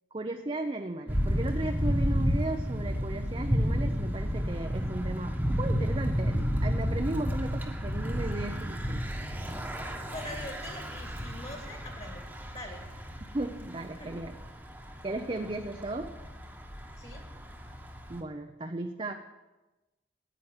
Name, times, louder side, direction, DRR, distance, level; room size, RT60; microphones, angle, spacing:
voice 1, 0.1-9.1 13.3-14.3 15.0-16.1 18.1-19.1, right 2 dB, 30° right, 5 dB, 0.6 m, -35 dB
Thunder / Bicycle, 1.1-18.2, equal, 10° right, 1.2 m, -32 dB
voice 2, 10.1-12.2 12.5-12.8 14.0-14.1 17.0-17.2, left 1 dB, 35° left, 3 dB, 2.1 m, -43 dB
10.0 x 9.3 x 9.0 m, 1.1 s
head